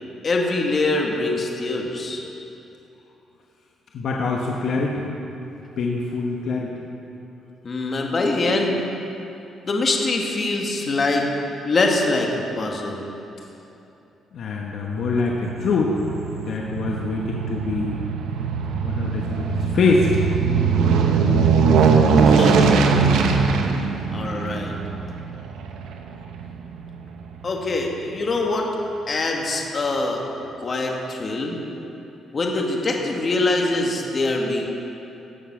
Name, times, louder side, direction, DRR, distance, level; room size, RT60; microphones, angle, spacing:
voice 1, 0.2-2.2 7.6-8.8 9.6-11.3 11.6-13.1 22.2-22.9 24.1-24.7 27.4-28.7 29.1-30.2 30.6-31.6 32.3-34.7, left 2 dB, 40° left, 0 dB, 1.9 m, -23 dB
voice 2, 3.9-5.0 5.8-6.7 14.3-16.0 16.4-18.0 18.7-20.1 24.3-24.5, left 3 dB, 65° left, -1 dB, 1.3 m, -24 dB
Aircraft, 15.0-27.5 27.9-28.0, right 5 dB, 85° right, 1.0 m, -21 dB
17.0 x 7.2 x 6.2 m, 2.9 s
cardioid pair, 90°, 0 cm